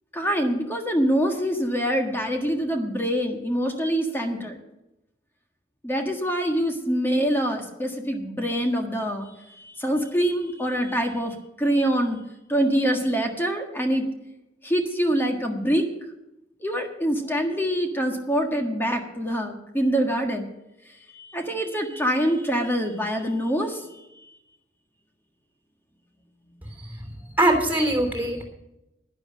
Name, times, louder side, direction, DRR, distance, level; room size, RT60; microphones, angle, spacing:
voice 1, 0.1-4.6 5.8-9.3 9.6-12.2 12.5-14.1 14.6-15.9 16.6-20.5 21.1-23.8, equal, 10° left, 3 dB, 1.6 m, -25 dB
voice 2, 27.4-28.4, right 1 dB, 10° right, 2 dB, 3.2 m, -22 dB
11.0 x 10.5 x 6.3 m, 0.89 s
head